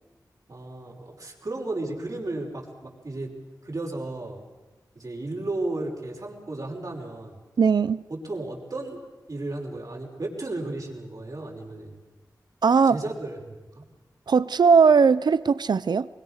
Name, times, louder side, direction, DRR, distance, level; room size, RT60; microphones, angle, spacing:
voice 1, 0.5-3.3 3.6-4.4 4.9-7.4 8.1-9.0 9.3-12.0 12.9-13.8, right 2 dB, 55° right, -1 dB, 5.7 m, -34 dB
voice 2, 7.6-8.0 12.6-13.0 14.3-16.1, right 5 dB, 80° right, 17 dB, 0.6 m, -19 dB
24.0 x 22.0 x 6.6 m, 1.2 s
cardioid pair, 45°, 7 cm